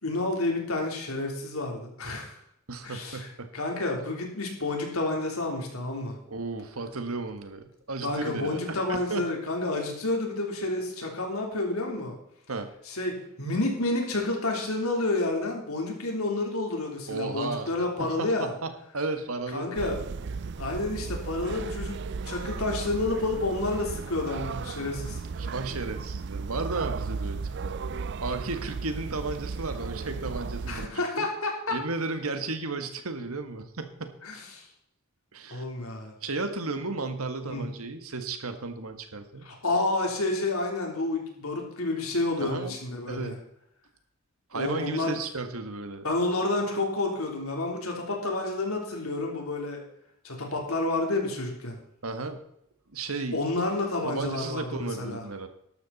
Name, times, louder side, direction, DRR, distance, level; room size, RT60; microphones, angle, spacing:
voice 1, 0.0-2.4 2.8-3.3 3.5-6.2 8.0-12.1 12.9-18.5 19.5-20.0 20.6-25.2 30.7-31.8 34.2-34.6 35.5-36.1 37.5-37.6 39.4-43.3 44.5-45.1 46.0-49.8 50.2-51.8 53.3-55.2, left 2 dB, 85° left, 1 dB, 3.6 m, -29 dB
voice 2, 2.7-3.5 6.3-9.2 12.5-12.7 17.1-17.7 18.0-19.8 25.4-27.7 28.2-31.3 31.7-34.2 35.3-35.6 36.2-39.5 42.4-42.8 43.0-43.3 44.5-46.0 52.0-52.4 52.9-53.4 54.0-55.5, right 3 dB, 85° right, 8 dB, 1.6 m, -34 dB
sound 1, 19.8-30.9, right 4 dB, 55° right, 0.4 m, -35 dB
13.0 x 12.0 x 4.2 m, 0.75 s
head